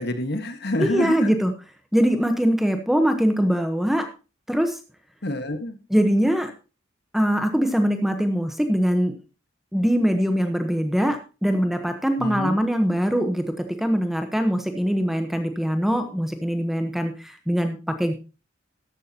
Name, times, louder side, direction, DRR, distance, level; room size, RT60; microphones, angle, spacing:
voice 1, 0.0-1.3 5.2-5.8 12.2-12.5, left 1 dB, 55° left, 8 dB, 1.5 m, -27 dB
voice 2, 0.8-1.5 1.9-4.1 4.5-4.8 5.9-6.5 7.1-9.1 9.7-18.1, equal, ahead, 6 dB, 1.0 m, -22 dB
13.5 x 11.0 x 2.9 m, 0.32 s
head